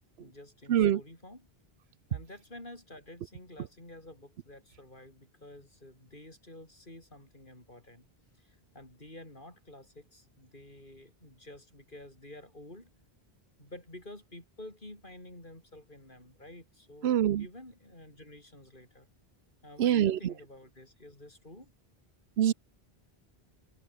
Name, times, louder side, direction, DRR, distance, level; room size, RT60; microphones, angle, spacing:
voice 1, 0.2-1.5 2.1-8.1 8.4-12.9 13.6-19.1 19.6-21.7, left 1 dB, 55° left, 5.6 m, -50 dB
voice 2, 0.7-1.0 17.0-17.4 19.8-20.2 22.4-22.5, right 10 dB, 80° right, 1.0 m, -24 dB
open air
omnidirectional pair, 1.0 m